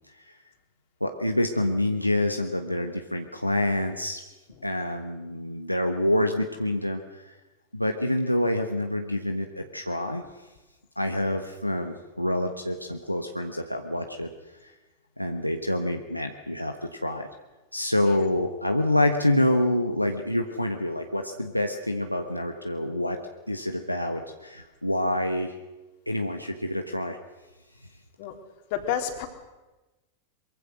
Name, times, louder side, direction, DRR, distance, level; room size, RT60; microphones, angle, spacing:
voice 1, 1.0-4.2 4.6-7.3 7.7-10.2 11.0-14.3 14.6-14.7 15.2-17.3 17.7-23.2 23.5-25.5 26.1-27.2, left 1 dB, 90° left, 4 dB, 1.3 m, -27 dB
voice 2, 28.7-29.3, left 9 dB, 50° left, 5 dB, 3.3 m, -30 dB
23.5 x 23.0 x 6.4 m, 1.1 s
figure-of-eight pair, 90°, 0 cm